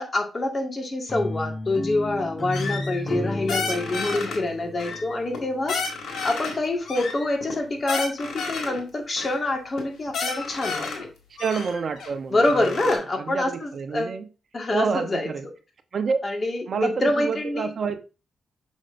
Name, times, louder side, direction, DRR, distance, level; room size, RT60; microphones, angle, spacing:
voice 1, 0.0-5.8 6.2-10.9 12.3-14.2 14.5-15.3 16.2-17.7, left 2 dB, 40° left, 1.8 m, -26 dB
sound 1, 1.1-6.2, left 1 dB, 20° left, 0.7 m, -33 dB
sound 2, 2.5-3.2 3.5-4.4 4.8-5.4 5.7-6.5 6.9-8.8 9.2-9.4 9.7-9.8 10.1-11.0 11.4-13.0, left 4 dB, 85° left, 2.0 m, -31 dB
voice 2, 11.4-12.7 13.2-14.2 14.7-15.4 15.9-16.2 16.7-18.0, right 5 dB, 60° right, 0.8 m, -28 dB
6.3 x 6.2 x 2.5 m
cardioid pair, 80°, 0 cm